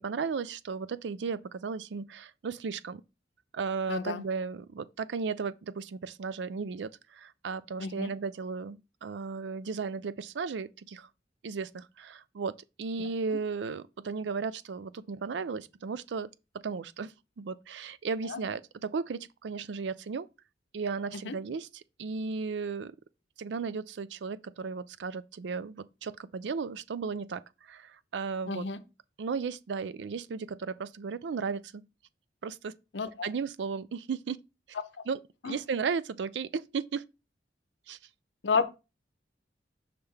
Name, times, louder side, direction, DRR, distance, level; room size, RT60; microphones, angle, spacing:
voice 1, 0.0-3.0 3.5-11.1 11.4-16.3 16.6-20.3 20.7-23.0 23.4-28.7 29.2-31.9 32.4-32.7 33.2-34.4 35.1-35.2 35.4-37.0 37.9-38.0, right 5 dB, 75° right, 0.4 m, -35 dB
voice 2, 3.9-4.2 7.8-8.1 18.2-18.4 21.2-21.3 28.5-28.8 32.9-33.3 35.4-35.6 38.4-38.7, left 5 dB, 85° left, 0.7 m, -31 dB
5.8 x 3.4 x 5.5 m
head